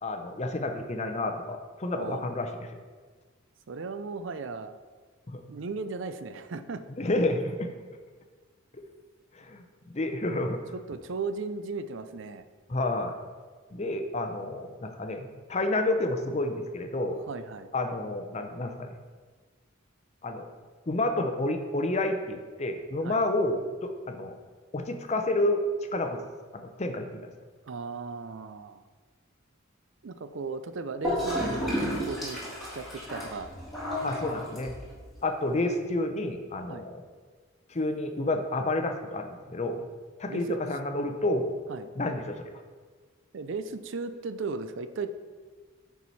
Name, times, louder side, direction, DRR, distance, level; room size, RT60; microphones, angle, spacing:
voice 1, 0.0-2.8 5.3-5.4 7.0-7.7 9.3-9.6 9.9-10.6 12.7-13.1 13.7-17.2 17.7-19.0 20.2-20.5 20.9-24.4 24.7-25.6 25.9-26.2 26.5-27.3 34.0-34.7 35.2-37.0 37.7-39.9 40.2-41.5 42.0-42.5, left 2 dB, 30° left, 6 dB, 0.6 m, -30 dB
voice 2, 3.7-4.8 5.5-6.8 10.7-12.5 17.3-17.7 23.0-23.2 27.7-28.8 30.0-32.4 32.7-33.5 36.7-36.9 40.3-40.6 41.7-41.9 43.3-45.1, right 4 dB, 60° right, 11 dB, 0.5 m, -36 dB
Gurgling / Toilet flush, 31.0-35.0, equal, ahead, 2.3 m, -32 dB
9.8 x 4.7 x 4.1 m, 1.5 s
head